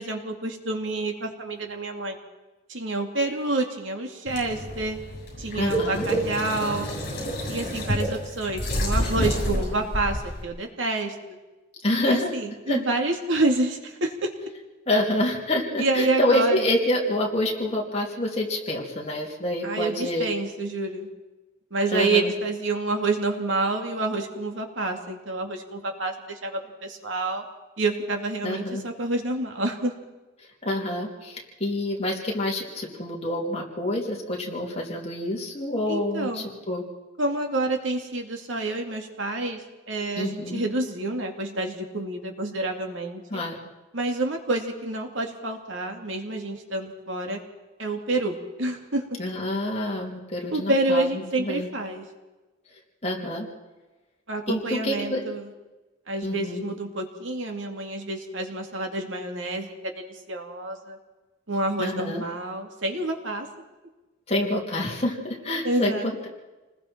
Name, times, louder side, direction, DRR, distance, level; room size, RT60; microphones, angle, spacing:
voice 1, 0.0-2.2 2.7-5.0 5.4-6.9 7.5-11.4 12.0-14.3 15.8-16.7 19.6-21.1 21.7-27.4 27.8-29.9 35.9-36.5 37.2-43.4 43.9-47.4 47.8-49.0 50.5-52.0 54.3-55.5 56.1-61.0 61.5-63.5 65.6-66.1, right 2 dB, 75° right, 3 dB, 2.5 m, -28 dB
sound 1, 4.3-10.4, equal, 45° left, 7.2 m, -28 dB
voice 2, 5.6-6.1 11.8-12.3 12.7-12.8 14.9-20.3 21.9-22.3 28.4-28.8 30.6-36.8 40.0-40.6 43.3-43.5 49.2-51.7 53.0-53.5 54.5-55.2 56.2-56.6 61.8-62.2 64.3-66.3, left 1 dB, 30° left, -1 dB, 3.2 m, -27 dB
28.5 x 20.5 x 4.5 m, 1.1 s
head